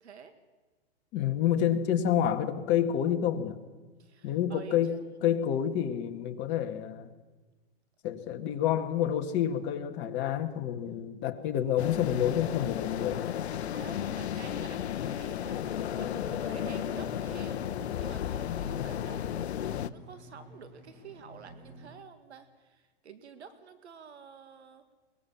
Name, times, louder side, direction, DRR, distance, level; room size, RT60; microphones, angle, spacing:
voice 1, 0.0-0.3 4.0-5.0 13.6-15.6 15.9-19.2 19.6-24.9, right 6 dB, 85° right, 10 dB, 2.0 m, -49 dB
voice 2, 1.1-3.6 4.2-7.1 8.0-13.2, left 10 dB, 35° left, 6 dB, 1.9 m, -28 dB
sound 1, 11.8-19.9, left 10 dB, 80° left, 0.9 m, -33 dB
sound 2, 13.4-21.9, equal, 30° right, 7.2 m, -50 dB
22.5 x 20.5 x 7.3 m, 1.3 s
hypercardioid pair, 135°, 33 cm